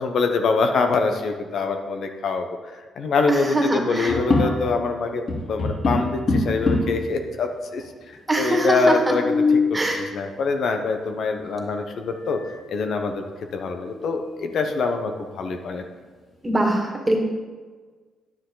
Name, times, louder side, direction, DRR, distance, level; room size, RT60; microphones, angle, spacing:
voice 1, 0.0-2.5 3.0-5.2 5.5-7.8 8.4-9.4 9.7-12.4 12.7-13.2 13.5-15.8, left 4 dB, 65° left, 5 dB, 0.9 m, -24 dB
voice 2, 3.3-4.1 8.3-9.1 9.7-10.1 16.4-17.2, right 1 dB, 15° right, 0 dB, 2.1 m, -22 dB
sound 1, 4.1-4.9 5.3-7.1 7.8-7.9 8.1-8.2 8.9-9.8 11.6-11.7 12.2-12.6 13.1-13.2 13.7-14.6, left 3 dB, 45° left, 3.1 m, -24 dB
10.0 x 9.1 x 3.9 m, 1.4 s
cardioid pair, 90°, 0 cm